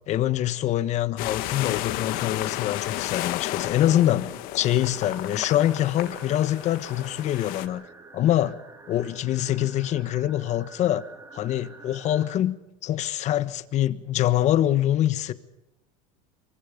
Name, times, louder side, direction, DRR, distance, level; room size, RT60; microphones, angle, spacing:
voice 1, 0.1-7.8 8.1-8.6 8.9-11.0 11.3-12.5 12.8-15.3, left 12 dB, 45° left, 1.4 m, -24 dB
sound 1, 1.2-7.7, left 15 dB, 60° left, 1.5 m, -32 dB
sound 2, 4.7-12.4, right 3 dB, 20° right, 3.3 m, -48 dB
25.5 x 23.5 x 5.2 m
supercardioid pair, 120°, 17 cm